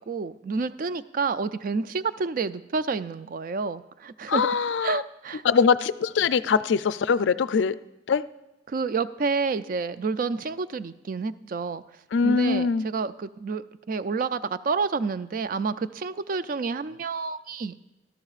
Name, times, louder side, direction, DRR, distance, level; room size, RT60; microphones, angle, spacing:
voice 1, 0.1-4.5 4.8-5.4 8.7-11.8 12.2-17.7, right 4 dB, 50° right, 13 dB, 0.4 m, -29 dB
voice 2, 4.3-5.0 5.4-7.8 8.1-8.2 12.1-12.9, left 5 dB, 75° left, 14 dB, 0.4 m, -22 dB
17.5 x 13.0 x 2.4 m, 0.95 s
head